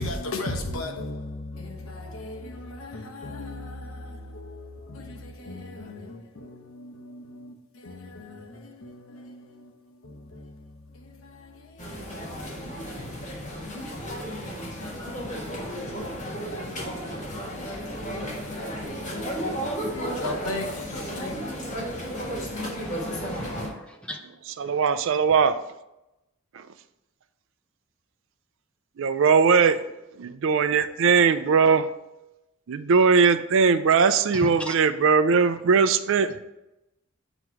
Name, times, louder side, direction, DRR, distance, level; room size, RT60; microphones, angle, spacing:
voice 1, 0.0-13.6 14.7-15.0 20.0-21.4 24.6-24.8, left 2 dB, 85° left, 0.9 m, -38 dB
sound 1, 11.8-23.7, equal, 40° left, 1.4 m, -33 dB
voice 2, 22.9-23.8 24.1-24.2 34.7-34.8, equal, 5° left, 0.6 m, -38 dB
voice 3, 24.5-25.6 29.0-29.8 30.4-31.9 32.7-36.4, right 5 dB, 65° right, 0.4 m, -20 dB
7.9 x 3.0 x 4.7 m
head